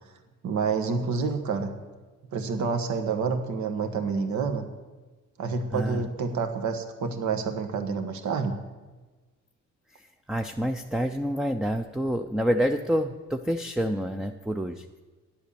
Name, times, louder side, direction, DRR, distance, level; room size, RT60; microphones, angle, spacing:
voice 1, 0.4-1.7 2.3-4.7 5.4-8.6, right 5 dB, 70° right, 6 dB, 1.4 m, -28 dB
voice 2, 5.7-6.0 10.3-15.0, equal, ahead, 6 dB, 0.5 m, -28 dB
10.5 x 8.2 x 6.9 m, 1.3 s
cardioid pair, 90°, 30 cm